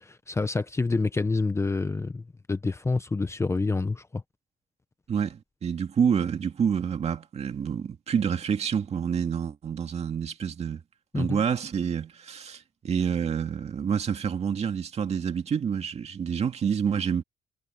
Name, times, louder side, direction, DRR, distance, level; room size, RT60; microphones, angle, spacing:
voice 1, 0.0-4.2 11.1-11.4, left 3 dB, 15° left, 0.9 m, -28 dB
voice 2, 5.1-10.8 11.1-17.2, right 7 dB, 40° right, 2.1 m, -28 dB
cardioid pair, 110°, 17 cm